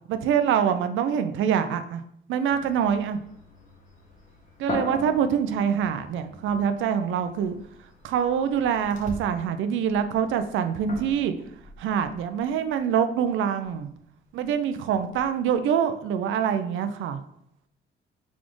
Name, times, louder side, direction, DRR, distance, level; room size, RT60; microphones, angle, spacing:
voice 1, 0.1-2.0 2.3-3.2 4.6-7.6 8.0-11.3 11.8-13.9 14.3-17.2, right 8 dB, 80° right, 9 dB, 0.5 m, -25 dB
sound 1, 2.5-9.3 9.8-15.6, left 2 dB, 40° left, 1.3 m, -41 dB
4.1 x 3.6 x 3.1 m, 0.72 s
cardioid pair, 90°, 20 cm